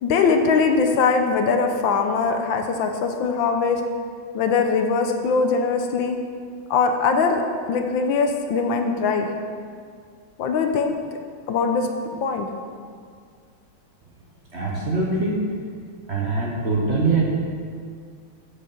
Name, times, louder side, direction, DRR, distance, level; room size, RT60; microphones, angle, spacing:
voice 1, 0.0-3.8 4.3-6.2 6.7-9.3 10.4-10.9 11.5-11.9 12.2-12.5, left 5 dB, 75° left, 5 dB, 1.4 m, -21 dB
voice 2, 14.5-15.5 16.1-17.2, right 3 dB, 40° right, -3 dB, 1.1 m, -23 dB
8.2 x 7.4 x 5.7 m, 2.1 s
omnidirectional pair, 2.2 m